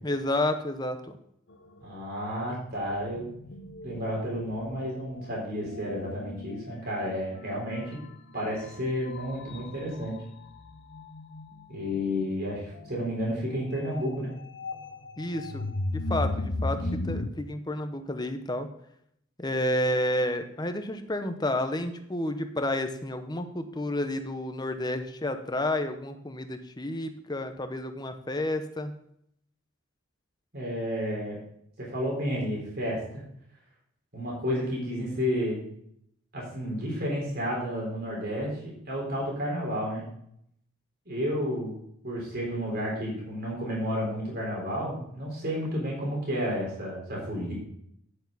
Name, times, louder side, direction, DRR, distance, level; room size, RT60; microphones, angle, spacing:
voice 1, 0.0-1.2 15.2-15.7 15.9-18.7 19.4-28.9, left 1 dB, 20° left, 8 dB, 0.8 m, -30 dB
sound 1, 1.5-1.9 2.7-17.3, left 2 dB, 55° left, 0.8 m, -37 dB
voice 2, 1.8-3.3 3.8-8.0 8.3-10.1 11.7-14.3 30.5-31.4 31.8-33.2 34.1-35.6 36.3-40.1 41.1-41.7 42.0-47.5, equal, 45° right, -3 dB, 4.1 m, -31 dB
9.8 x 8.7 x 4.0 m, 0.71 s
head